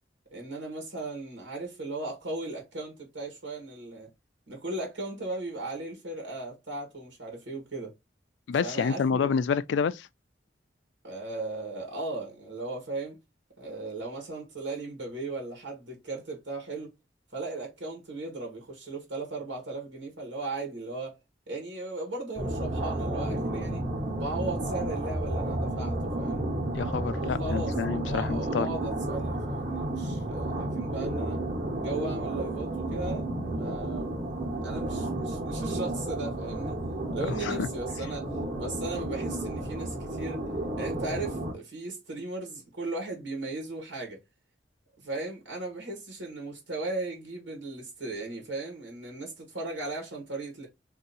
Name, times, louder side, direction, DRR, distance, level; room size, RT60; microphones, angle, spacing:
voice 1, 0.3-4.1 4.5-7.9 8.6-9.3 11.0-13.2 13.6-16.9 17.3-21.2 21.5-26.5 27.1-31.4 31.8-34.3 34.6-36.8 37.1-38.3 38.6-40.4 40.8-44.2 45.0-50.7, right 2 dB, 90° right, 1.4 m, -37 dB
voice 2, 8.5-10.1 26.7-28.7 37.3-37.7, left 6 dB, 75° left, 0.3 m, -28 dB
sound 1, 22.4-41.5, right 1 dB, 40° right, 1.1 m, -32 dB
2.7 x 2.7 x 4.0 m
head